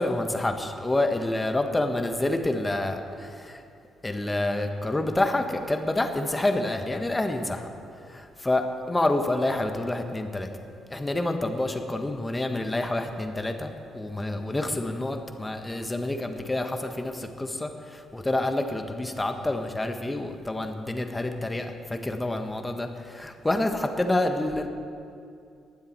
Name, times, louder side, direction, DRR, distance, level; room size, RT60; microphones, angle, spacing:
voice 1, 0.0-3.6 4.0-7.7 8.1-10.5 10.9-24.7, left 2 dB, 20° left, 6 dB, 1.4 m, -28 dB
20.0 x 7.6 x 4.6 m, 2.4 s
hypercardioid pair, 45°, 0 cm